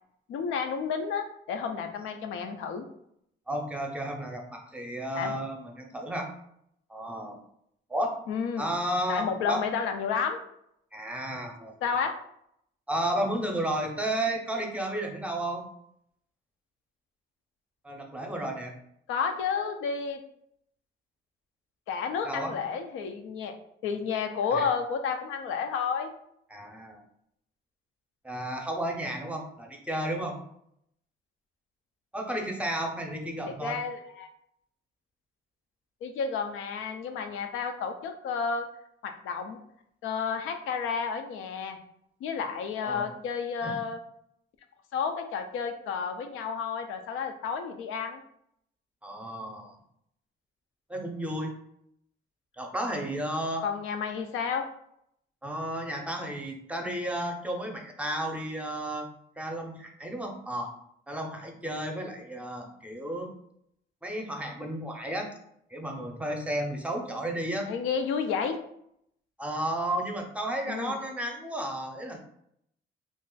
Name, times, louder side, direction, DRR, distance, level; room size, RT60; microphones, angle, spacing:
voice 1, 0.3-2.9 5.2-5.3 8.3-8.7 9.1-10.4 11.8-12.1 19.1-20.2 21.9-23.5 23.8-26.1 33.5-34.3 36.0-38.7 39.0-39.6 40.0-41.8 42.2-44.0 44.9-48.2 53.6-54.7 67.7-68.6 70.7-71.0, left 6 dB, 85° left, 6 dB, 0.5 m, -31 dB
voice 2, 3.5-6.3 6.9-7.4 7.9-8.2 8.6-9.6 10.9-11.8 12.9-15.6 17.8-18.8 22.3-22.6 24.5-24.6 26.5-27.0 28.2-30.4 32.1-33.8 42.8-43.1 43.6-43.8 49.0-49.8 50.9-51.5 52.6-53.6 55.4-59.1 59.4-60.7 61.1-63.3 64.0-65.3 65.7-67.7 69.4-72.2, right 1 dB, 5° right, 2 dB, 0.6 m, -32 dB
2.5 x 2.4 x 3.8 m, 0.73 s
cardioid pair, 90°, 20 cm